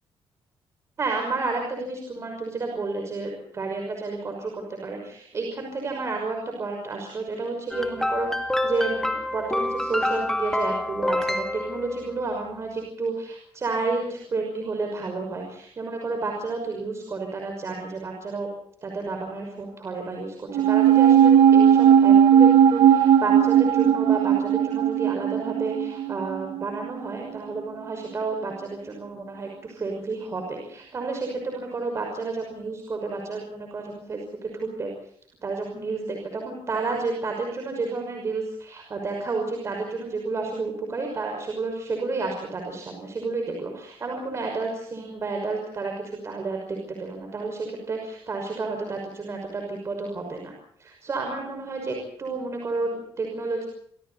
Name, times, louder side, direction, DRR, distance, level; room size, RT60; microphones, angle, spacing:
voice 1, 1.0-18.5 18.8-34.9 35.4-50.5 50.8-53.7, right 3 dB, 30° right, 2 dB, 5.9 m, -31 dB
sound 1, 7.7-12.3, left 1 dB, 5° left, 2.5 m, -27 dB
sound 2, 20.5-27.1 27.4-27.5, right 9 dB, 85° right, 1.8 m, -17 dB
28.5 x 26.0 x 4.3 m, 0.65 s
cardioid pair, 175°, 9 cm